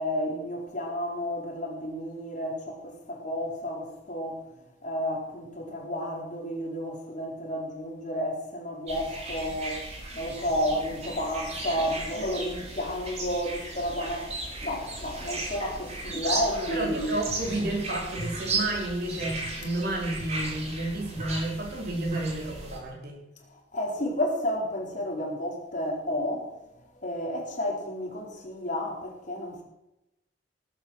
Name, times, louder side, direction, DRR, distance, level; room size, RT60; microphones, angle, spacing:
voice 1, 0.0-4.5 4.8-9.8 10.1-17.2 23.5-26.5 27.0-29.6, equal, 45° left, 4.4 m, -31 dB
sound 1, 8.9-22.8, right 2 dB, 40° right, 3.6 m, -36 dB
voice 2, 16.7-23.2, right 2 dB, 60° right, 4.7 m, -31 dB
18.5 x 9.1 x 6.5 m
head